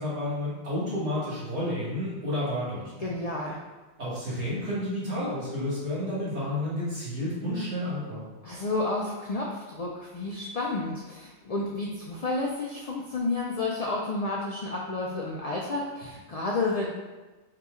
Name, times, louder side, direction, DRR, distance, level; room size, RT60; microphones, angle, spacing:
voice 1, 0.0-3.1 4.0-8.3, left 1 dB, 75° right, -8 dB, 1.7 m, -31 dB
voice 2, 3.0-3.6 8.4-16.9, left 2 dB, 65° left, -3 dB, 0.3 m, -31 dB
4.1 x 2.8 x 3.5 m, 1.2 s
omnidirectional pair, 1.1 m